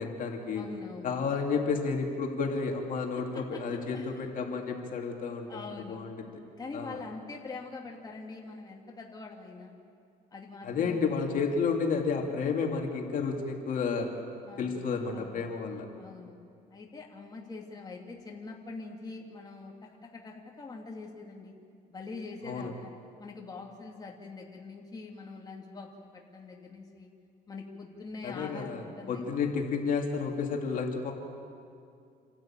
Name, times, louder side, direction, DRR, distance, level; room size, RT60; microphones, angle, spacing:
voice 1, 0.0-0.7 1.0-6.3 6.7-7.0 10.6-14.1 14.6-15.9 22.4-22.7 28.2-31.1, left 5 dB, 55° left, 1 dB, 2.6 m, -31 dB
voice 2, 0.5-1.2 3.3-3.6 3.9-4.1 5.5-6.0 6.6-9.7 10.3-11.0 14.5-14.8 15.1-15.5 16.0-16.4 16.7-21.5 21.9-22.9 23.2-27.1 27.5-29.2, left 3 dB, 25° left, -1 dB, 2.5 m, -44 dB
28.0 x 12.5 x 8.9 m, 2.4 s
cardioid pair, 110°, 17 cm